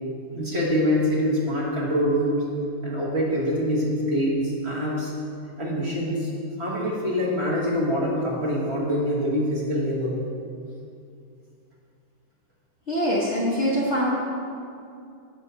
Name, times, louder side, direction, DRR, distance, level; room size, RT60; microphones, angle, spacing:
voice 1, 0.3-2.5 2.8-5.1 5.6-6.3 6.6-10.2, equal, 35° right, -6 dB, 1.4 m, -25 dB
voice 2, 12.9-14.1, equal, 45° left, -6 dB, 1.0 m, -23 dB
8.0 x 5.4 x 5.6 m, 2.5 s
omnidirectional pair, 2.2 m